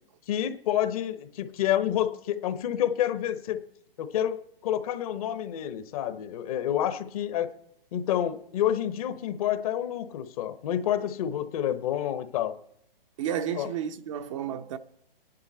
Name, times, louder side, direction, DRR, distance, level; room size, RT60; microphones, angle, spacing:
voice 1, 0.3-3.6 4.0-7.5 7.9-12.6 13.5-13.7, left 11 dB, 40° left, 1.0 m, -28 dB
voice 2, 13.2-14.8, right 9 dB, 35° right, 0.7 m, -32 dB
27.5 x 10.5 x 4.3 m
figure-of-eight pair, 130°, 29 cm